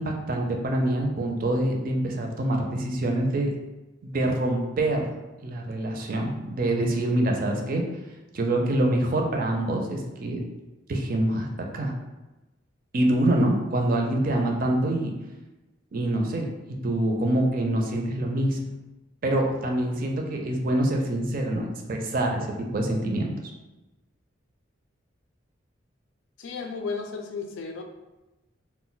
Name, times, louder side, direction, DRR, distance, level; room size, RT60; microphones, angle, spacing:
voice 1, 0.0-3.5 4.0-5.1 5.4-7.8 8.3-10.4 10.9-11.9 12.9-15.1 15.9-16.5 16.8-18.6 19.2-23.3, right 1 dB, 45° right, 2 dB, 0.4 m, -25 dB
voice 2, 26.4-27.8, left 4 dB, 80° left, 4 dB, 0.4 m, -33 dB
2.2 x 2.1 x 3.8 m, 1.1 s
head